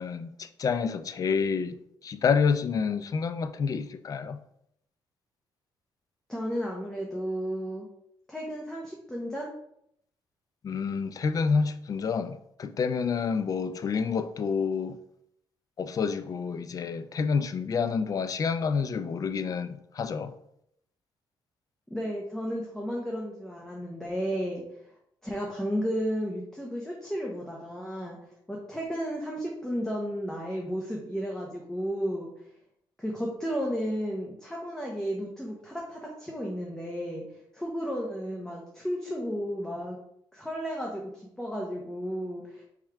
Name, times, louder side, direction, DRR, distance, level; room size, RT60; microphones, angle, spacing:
voice 1, 0.0-1.8 2.0-4.4 10.6-15.0 15.8-20.3, left 5 dB, 40° left, 0.4 m, -28 dB
voice 2, 6.3-7.9 8.3-9.5 21.9-24.6 25.2-28.2 28.5-32.3 33.0-37.2 37.5-40.0 40.3-41.0 41.4-42.6, equal, 5° left, 0.8 m, -33 dB
3.6 x 3.2 x 4.5 m
cardioid pair, 110°, 9 cm